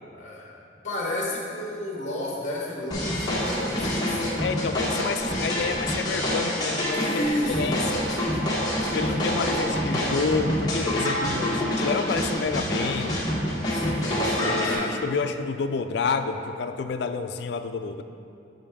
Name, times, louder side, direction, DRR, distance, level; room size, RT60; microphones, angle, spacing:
voice 1, 0.1-0.5 0.8-4.2 6.9-8.3 8.7-9.0 13.7-15.0, left 1 dB, 40° left, -3 dB, 1.2 m, -32 dB
sound 1, 2.9-14.8, equal, 20° left, 1.0 m, -26 dB
voice 2, 4.4-7.2 7.6-8.1 8.9-13.3 14.2-18.0, left 5 dB, 65° left, 8 dB, 0.3 m, -29 dB
6.9 x 5.6 x 3.5 m, 2.5 s
head